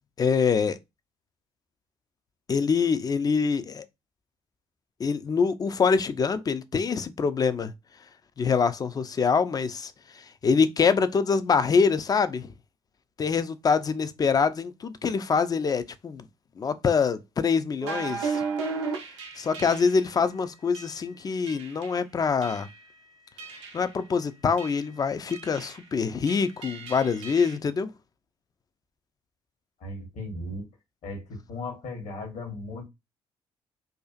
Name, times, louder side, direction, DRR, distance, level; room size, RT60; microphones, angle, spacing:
voice 1, 0.2-0.8 2.5-3.8 5.0-7.7 8.4-9.9 10.4-12.5 13.2-16.3 16.6-18.4 19.4-22.7 23.7-27.9, left 5 dB, 25° left, 0.3 m, -25 dB
sound 1, 17.8-20.1 20.7-20.9 21.5-22.0 22.4-22.9 23.4-23.9 24.6-24.9 25.3-25.8 26.3-27.6, right 5 dB, 75° right, 0.5 m, -35 dB
voice 2, 29.8-30.7 31.0-32.9, left 2 dB, 55° left, 1.1 m, -36 dB
2.4 x 2.4 x 2.3 m
figure-of-eight pair, 45°, 15 cm